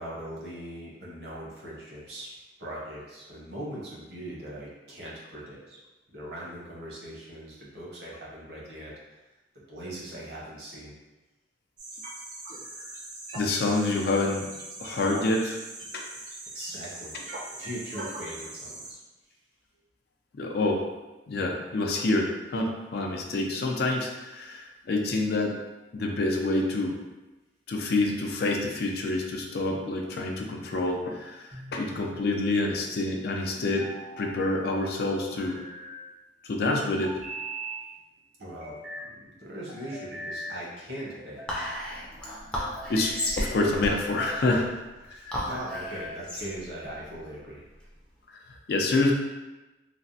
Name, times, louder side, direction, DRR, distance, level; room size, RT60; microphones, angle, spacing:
voice 1, 0.0-5.8 6.1-9.2 9.7-10.9 16.5-17.2 17.5-19.0 38.4-38.8 39.0-42.0 45.1-47.6, right 1 dB, 65° right, -5 dB, 0.9 m, -40 dB
sound 1, 11.8-18.9, right 2 dB, 45° right, 0.5 m, -41 dB
voice 2, 13.3-14.5 14.8-15.6 15.9-16.0 20.3-20.8 21.3-25.6 25.9-27.0 27.7-33.9 34.2-35.6 36.4-37.2 42.2-42.3 42.9-44.7 45.1-45.4 48.7-49.1, left 2 dB, 60° left, 1 dB, 0.4 m, -27 dB
sound 2, 31.5-32.2 33.6-34.3 35.2-36.0 37.0-37.8 38.4-39.1 39.7-40.6 41.2-41.8 42.6-43.5 44.0-44.6 45.3-46.2, right 1 dB, 90° right, 1.1 m, -41 dB
Whispering, 41.5-48.1, left 1 dB, 5° left, 0.5 m, -35 dB
3.2 x 2.0 x 2.7 m, 1.1 s
head